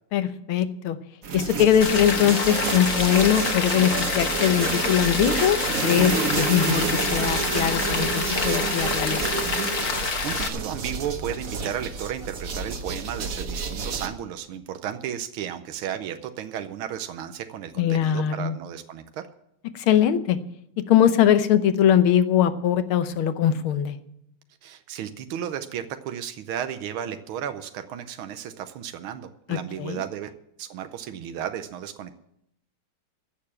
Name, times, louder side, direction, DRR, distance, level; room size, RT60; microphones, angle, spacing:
voice 1, 0.1-1.0 1.3-9.6 17.8-18.6 19.8-20.4 20.9-24.0 29.5-30.0, left 9 dB, 85° left, 11 dB, 1.7 m, -21 dB
sound 1, 1.2-14.1, right 5 dB, 50° right, 1.3 m, -29 dB
Rain, 1.8-10.5, left 5 dB, 45° left, 1.4 m, -28 dB
voice 2, 10.2-19.2 24.6-30.3 30.6-32.1, right 9 dB, 90° right, 9 dB, 1.6 m, -34 dB
15.0 x 6.8 x 8.4 m, 0.77 s
omnidirectional pair, 2.3 m